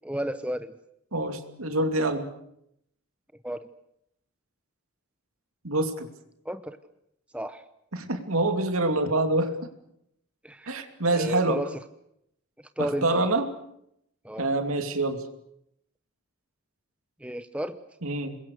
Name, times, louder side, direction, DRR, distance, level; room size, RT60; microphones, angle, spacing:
voice 1, 0.0-0.7 3.4-3.7 6.4-6.8 7.3-7.6 10.4-10.8 11.1-11.8 12.6-13.3 14.2-14.5 17.2-17.8, right 1 dB, 5° right, 10 dB, 0.9 m, -33 dB
voice 2, 1.1-2.3 5.6-6.1 7.9-9.5 10.7-11.6 12.8-13.5 14.4-15.2 18.0-18.4, right 2 dB, 80° right, 7 dB, 2.7 m, -26 dB
27.0 x 22.0 x 6.7 m, 0.76 s
head